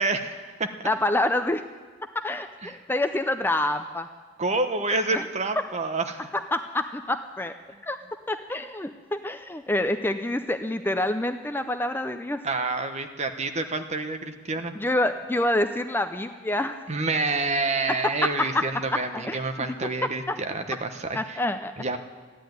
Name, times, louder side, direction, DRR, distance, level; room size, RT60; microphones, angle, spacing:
voice 1, 0.0-0.7 2.6-2.7 4.4-6.3 12.4-14.7 16.9-21.4 21.8-22.0, right 3 dB, 35° right, 7 dB, 1.0 m, -28 dB
voice 2, 0.8-1.6 2.1-4.1 5.1-5.2 6.5-7.5 7.8-8.0 8.3-12.4 14.8-16.8 18.2-18.6 19.1-19.4 20.3-20.4 21.1-21.7, left 1 dB, 10° left, 8 dB, 0.5 m, -27 dB
14.0 x 10.0 x 9.3 m, 1.4 s
head